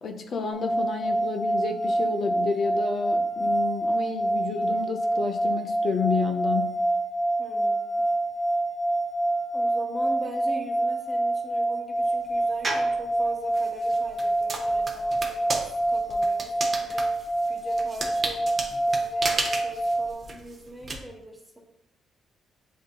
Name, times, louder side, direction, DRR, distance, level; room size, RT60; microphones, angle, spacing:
voice 1, 0.0-6.8, left 5 dB, 55° left, 4 dB, 0.5 m, -30 dB
sound 1, 0.5-20.1, right 1 dB, 35° left, 0.8 m, -26 dB
voice 2, 7.4-8.0 9.5-18.5 18.9-21.6, right 1 dB, 10° right, 1 dB, 1.1 m, -42 dB
sound 2, 12.6-13.0 13.5-21.0, right 3 dB, 40° right, 0.7 m, -33 dB
7.4 x 2.6 x 2.2 m, 0.86 s
cardioid pair, 85°, 0 cm